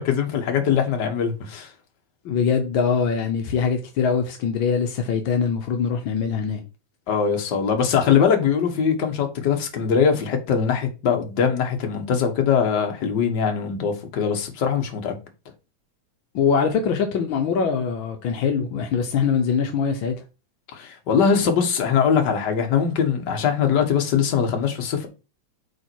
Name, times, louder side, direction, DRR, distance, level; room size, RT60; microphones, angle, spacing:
voice 1, 0.0-1.7 7.1-15.1 20.7-25.1, left 7 dB, 55° left, 1.3 m, -22 dB
voice 2, 2.2-6.6 16.3-20.1, left 6 dB, 80° left, 1.1 m, -23 dB
8.0 x 3.6 x 4.5 m
omnidirectional pair, 3.3 m